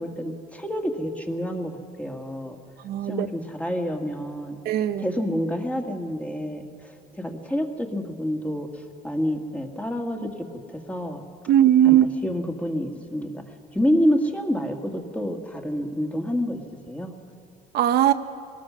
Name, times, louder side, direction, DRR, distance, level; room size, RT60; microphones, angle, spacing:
voice 1, 0.0-2.6 3.1-4.6 5.0-11.2 11.8-13.4 13.7-16.6 16.9-17.1, equal, 10° left, 3 dB, 1.8 m, -28 dB
voice 2, 2.8-3.3 4.7-5.0 11.5-12.1 17.7-18.1, right 11 dB, 70° right, 9 dB, 0.7 m, -18 dB
22.5 x 19.5 x 6.2 m, 2.6 s
cardioid pair, 110°, 17 cm